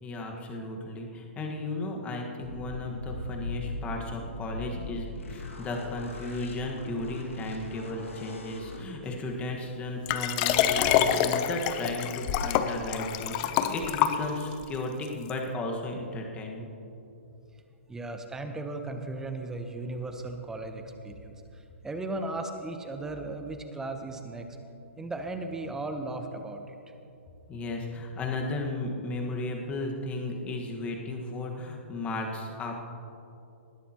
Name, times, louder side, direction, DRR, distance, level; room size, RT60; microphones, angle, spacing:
voice 1, 0.0-16.7 27.5-32.7, left 2 dB, 20° left, 1 dB, 1.6 m, -35 dB
sound 1, 2.4-8.8, left 1 dB, 90° left, 2.1 m, -39 dB
Liquid, 10.1-14.6 15.3-15.4, left 10 dB, 35° left, 0.7 m, -26 dB
voice 2, 17.9-24.6 25.0-26.8, right 2 dB, 10° right, 5 dB, 1.0 m, -36 dB
19.5 x 11.5 x 3.0 m, 2.8 s
hypercardioid pair, 135°, 7 cm